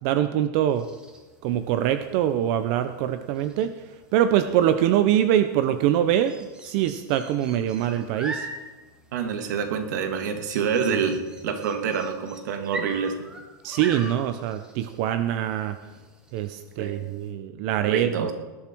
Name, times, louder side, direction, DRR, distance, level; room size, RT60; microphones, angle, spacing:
voice 1, 0.0-0.9 1.4-3.7 4.1-8.5 13.6-15.8 16.3-18.3, right 11 dB, 40° right, 10 dB, 0.7 m, -24 dB
sound 1, 0.7-17.3, right 2 dB, 10° right, 1.8 m, -43 dB
voice 2, 9.1-13.1 16.8-16.9 17.9-18.3, right 6 dB, 65° right, 5 dB, 2.2 m, -27 dB
19.5 x 12.0 x 4.6 m, 1.2 s
supercardioid pair, 160°, 10 cm